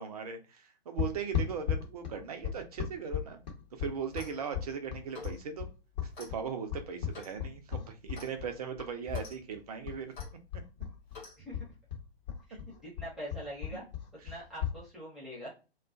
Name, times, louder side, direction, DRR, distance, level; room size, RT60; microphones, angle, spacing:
voice 1, 0.0-3.4 3.8-5.7 6.2-10.1 13.7-13.8 14.3-14.4, right 6 dB, 35° right, 7 dB, 0.5 m, -38 dB
sound 1, 1.0-9.3 9.5-11.2 11.5-14.8, left 9 dB, 40° left, 0.9 m, -36 dB
Clock, 4.0-4.4 5.1-5.4 6.1-6.3 7.1-7.4 8.1-8.3 9.1-9.4 10.1-10.3 11.1-11.4, left 3 dB, 20° left, 1.2 m, -48 dB
voice 2, 12.8-13.8 14.2-15.5, equal, ahead, -7 dB, 0.9 m, -43 dB
2.3 x 2.3 x 2.4 m, 0.32 s
figure-of-eight pair, 125°, 32 cm